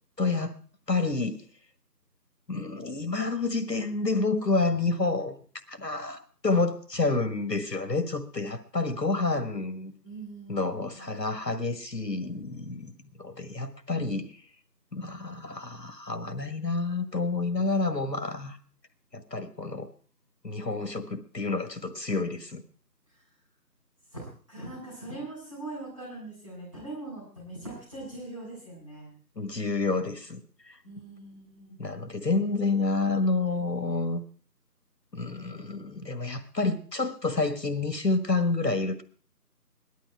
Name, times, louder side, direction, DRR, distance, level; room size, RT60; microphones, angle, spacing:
voice 1, 0.2-0.6 0.9-1.4 2.5-5.4 5.7-9.9 10.5-14.4 14.9-18.6 19.1-19.9 20.4-22.6 29.4-30.8 31.8-34.2 35.1-39.0, left 3 dB, 75° left, 1.6 m, -29 dB
voice 2, 10.0-10.7 11.0-11.1 23.1-23.2 24.1-29.1 30.8-31.8, right 2 dB, 20° right, 7.7 m, -41 dB
17.5 x 12.0 x 4.6 m
figure-of-eight pair, 180°, 50 cm